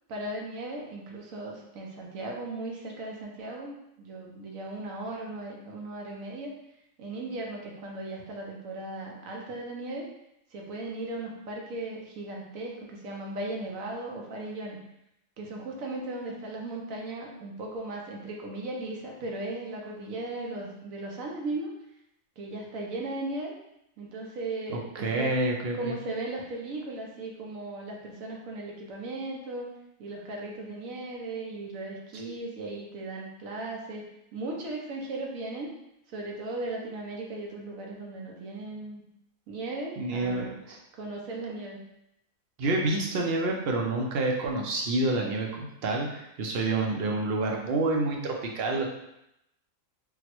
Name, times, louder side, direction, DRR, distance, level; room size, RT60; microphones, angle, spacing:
voice 1, 0.1-6.5 7.0-10.1 10.5-14.8 15.4-21.7 22.4-23.5 24.0-25.4 25.8-29.7 30.0-35.7 36.1-39.0 39.5-40.6 40.9-41.8, right 2 dB, 85° right, -1 dB, 1.1 m, -37 dB
voice 2, 24.7-25.9 40.0-40.8 42.6-48.9, right 2 dB, 60° right, 0 dB, 0.7 m, -28 dB
3.9 x 2.1 x 2.9 m, 0.83 s
omnidirectional pair, 1.4 m